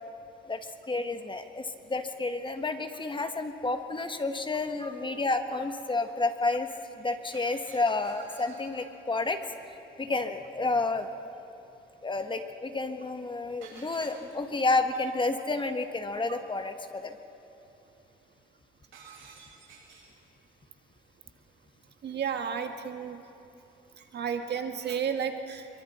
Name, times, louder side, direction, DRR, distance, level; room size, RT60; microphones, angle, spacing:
voice 1, 0.9-6.7 6.9-9.4 10.0-11.1 12.0-17.1, left 3 dB, 25° left, 7 dB, 1.5 m, -30 dB
Shatter, 7.3-9.0 13.6-14.7 18.9-20.2, right 4 dB, 75° right, 6.8 m, -52 dB
voice 2, 22.0-23.2 24.0-25.7, right 7 dB, 60° right, 5 dB, 1.7 m, -32 dB
27.0 x 23.5 x 4.3 m, 2.8 s
cardioid pair, 90°, 20 cm